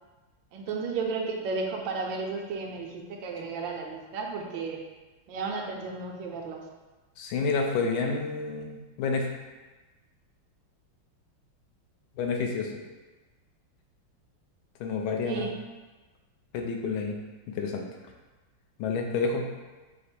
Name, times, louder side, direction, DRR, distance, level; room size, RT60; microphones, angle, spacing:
voice 1, 0.5-4.8 5.3-6.6 15.2-15.5, right 4 dB, 75° right, 1 dB, 1.2 m, -33 dB
voice 2, 7.2-9.3 12.2-12.7 14.8-15.5 16.5-17.2 17.5-17.8 18.8-19.5, left 4 dB, 85° left, 2 dB, 1.4 m, -29 dB
5.0 x 2.0 x 4.3 m, 1.2 s
omnidirectional pair, 2.2 m